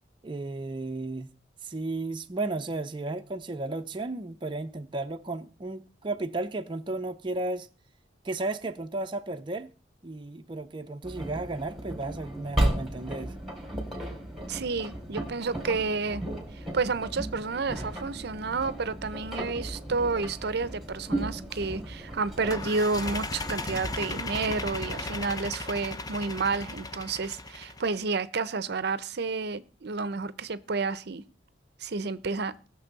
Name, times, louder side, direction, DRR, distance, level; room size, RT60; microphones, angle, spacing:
voice 1, 0.2-1.3 1.6-7.7 8.2-9.7 10.0-13.3, right 2 dB, 25° right, 0.6 m, -34 dB
Engine, 11.0-25.2, right 1 dB, ahead, 2.8 m, -35 dB
voice 2, 14.5-16.2 16.7-31.2 31.8-32.5, right 4 dB, 60° right, 0.6 m, -30 dB
sound 1, 22.5-28.0, left 2 dB, 20° left, 0.6 m, -36 dB
19.0 x 6.8 x 4.0 m
head